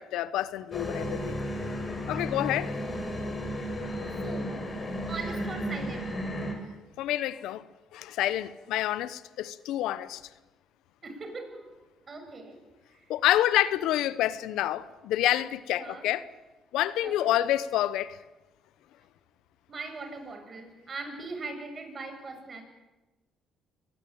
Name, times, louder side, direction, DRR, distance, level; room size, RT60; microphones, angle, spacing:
voice 1, 0.0-1.4 2.1-2.8 7.0-7.7 7.9-10.2 13.1-16.3 16.7-18.2, left 13 dB, 80° left, 0.9 m, -28 dB
sound 1, 0.7-6.5, equal, 35° left, 6.9 m, -33 dB
voice 2, 4.2-4.7 5.1-6.2 11.0-11.7 12.1-12.6 12.9-13.1 15.8-16.1 17.0-17.3 19.7-22.6, right 3 dB, 40° right, 7.1 m, -40 dB
24.0 x 19.5 x 8.8 m
supercardioid pair, 65°, 0 cm